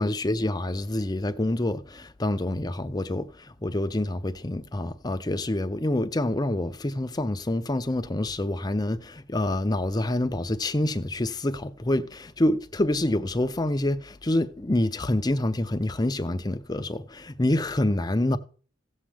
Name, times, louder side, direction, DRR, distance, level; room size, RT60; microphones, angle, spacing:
voice 1, 0.0-3.3 3.6-18.4, left 1 dB, 20° left, 0.6 m, -27 dB
16.5 x 7.4 x 3.4 m
head